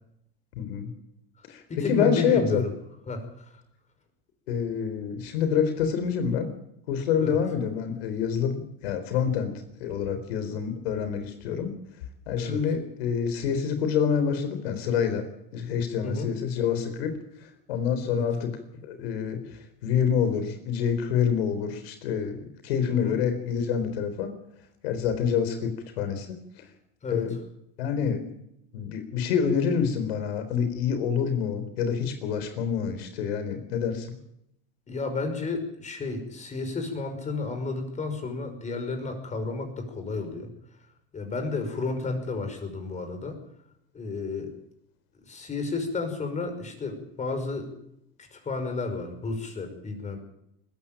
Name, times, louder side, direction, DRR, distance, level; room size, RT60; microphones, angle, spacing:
voice 1, 0.6-0.9 1.5-2.6 4.5-6.5 6.9-9.5 9.8-11.8 12.3-15.3 15.5-17.2 17.7-19.4 19.8-24.3 24.8-26.4 27.1-27.3 27.8-28.2 28.7-34.1, left 7 dB, 85° left, 9 dB, 4.1 m, -27 dB
voice 2, 1.7-2.7 3.1-3.2 7.2-7.4 12.4-12.6 16.0-16.3 18.1-18.2 22.8-23.2 27.0-27.2 34.9-40.5 41.1-43.4 43.9-44.5 45.2-47.7 48.3-50.2, left 3 dB, 25° left, 6 dB, 5.5 m, -32 dB
20.0 x 14.5 x 8.9 m, 0.77 s
supercardioid pair, 125°, 30 cm